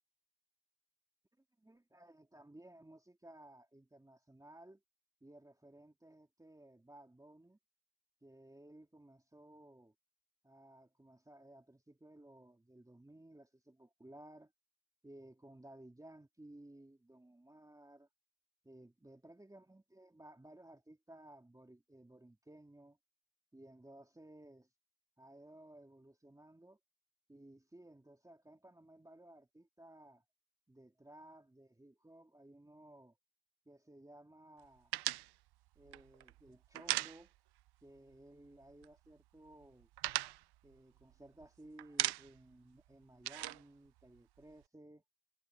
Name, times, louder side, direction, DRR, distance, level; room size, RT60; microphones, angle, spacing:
voice 1, 1.6-4.8 5.2-7.6 8.2-9.9 10.4-14.5 15.0-18.1 18.6-23.0 23.5-24.7 25.2-26.8 27.3-30.2 30.7-33.1 33.6-34.9 35.7-37.3 37.8-39.9 40.6-45.0, right 1 dB, 5° right, 3.2 m, -58 dB
sound 1, 34.9-37.7 38.0-38.1 38.4-39.1 39.5-41.5 41.8-42.5 42.8-44.6, right 16 dB, 60° right, 0.5 m, -39 dB
cardioid pair, 175°, 46 cm